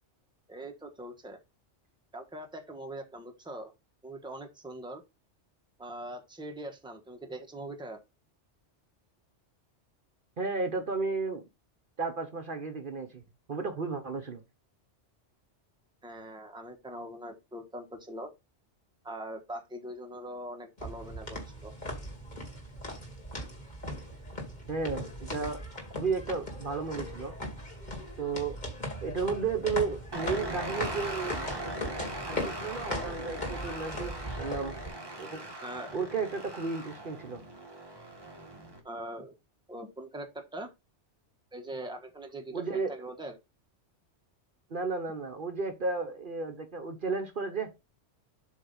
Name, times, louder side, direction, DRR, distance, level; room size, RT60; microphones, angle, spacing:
voice 1, 0.5-1.4 2.1-3.7 4.0-5.0 5.8-8.0 16.0-18.3 19.0-21.7 35.6-35.9 38.8-39.3 39.7-40.7 41.5-43.4, right 1 dB, 5° right, 1.1 m, -42 dB
voice 2, 10.4-11.4 12.0-13.2 13.5-14.4 24.7-25.6 25.9-27.4 28.2-28.6 29.0-31.5 32.2-34.8 35.2-35.4 35.9-37.4 42.5-42.9 44.7-47.7, right 4 dB, 50° right, 1.1 m, -33 dB
sound 1, 20.8-34.9, left 1 dB, 40° left, 2.3 m, -39 dB
sound 2, 30.1-38.8, right 1 dB, 20° right, 1.7 m, -40 dB
7.9 x 3.4 x 5.4 m
omnidirectional pair, 1.2 m